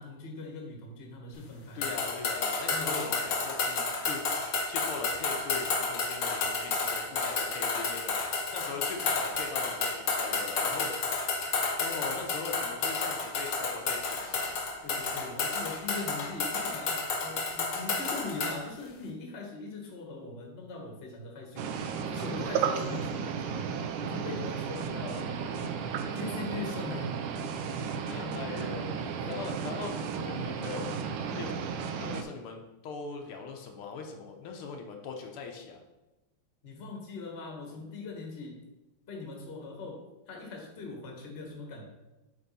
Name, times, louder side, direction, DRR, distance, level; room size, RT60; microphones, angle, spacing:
voice 1, 0.0-1.9 2.7-3.1 14.8-23.7 24.0-25.3 26.1-27.1 36.6-38.7 39.1-41.8, left 3 dB, 35° left, 0 dB, 1.2 m, -41 dB
voice 2, 1.7-4.2 4.5-11.3 11.8-14.6 28.1-31.0 31.3-31.5 32.0-35.8, left 5 dB, 80° left, 3 dB, 1.7 m, -41 dB
sound 1, 1.8-18.6, left 4 dB, 60° left, 1.4 m, -31 dB
skype noise, 21.6-32.2, right 6 dB, 80° right, 1.5 m, -34 dB
7.9 x 3.7 x 4.1 m, 1.0 s
omnidirectional pair, 2.4 m